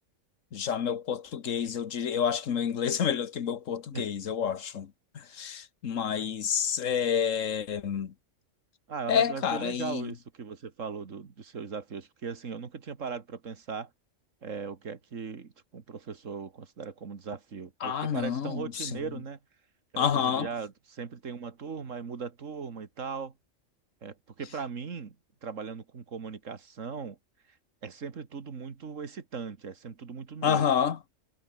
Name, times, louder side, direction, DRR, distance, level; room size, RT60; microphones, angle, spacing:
voice 1, 0.5-4.9 5.1-8.1 9.1-10.1 17.8-18.9 20.0-20.5 30.4-31.0, left 8 dB, 80° left, 1.6 m, -29 dB
voice 2, 8.9-13.9 14.4-19.4 19.9-23.3 24.0-25.2 25.4-27.2 27.5-27.6 27.8-30.9, right 5 dB, 85° right, 2.1 m, -39 dB
omnidirectional pair, 1.3 m